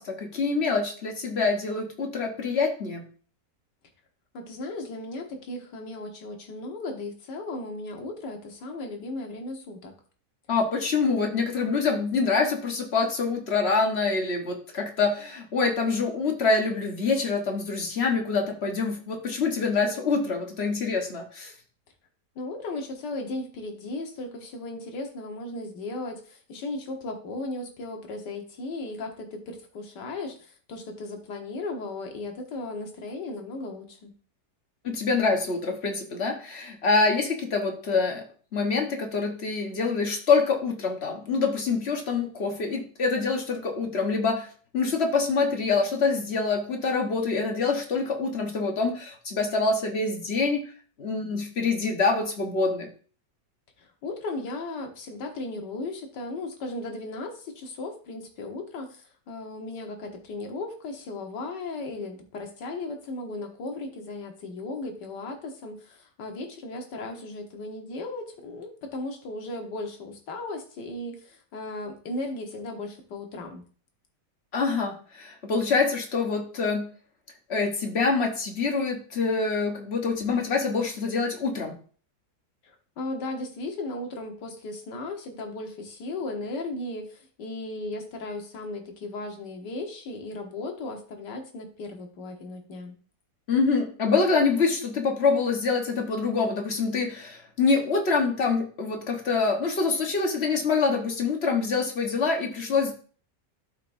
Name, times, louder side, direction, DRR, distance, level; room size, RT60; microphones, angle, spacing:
voice 1, 0.0-3.0 10.5-21.5 34.8-38.2 38.5-44.5 44.7-50.6 51.0-52.9 74.5-76.8 77.5-81.7 93.5-102.9, left 4 dB, 40° left, 3 dB, 1.4 m, -25 dB
voice 2, 4.3-9.9 22.4-34.1 53.8-73.6 82.6-92.9, left 2 dB, 80° left, 3 dB, 1.9 m, -36 dB
12.5 x 4.8 x 2.6 m, 0.42 s
omnidirectional pair, 1.8 m